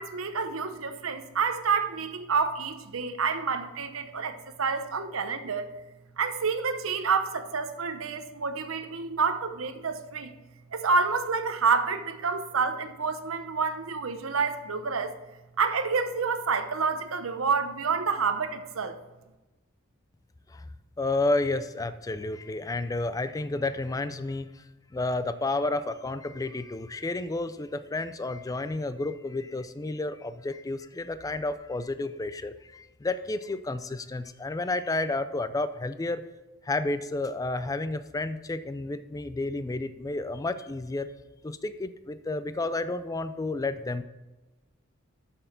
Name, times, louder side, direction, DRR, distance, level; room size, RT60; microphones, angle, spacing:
voice 1, 0.0-5.8 6.2-10.3 10.7-15.2 15.6-19.0, right 5 dB, 85° right, 9 dB, 0.8 m, -28 dB
voice 2, 21.0-24.6 24.9-36.2 36.6-41.1 41.4-44.0, left 2 dB, 15° left, 12 dB, 0.4 m, -31 dB
7.3 x 7.0 x 5.6 m, 1.1 s
head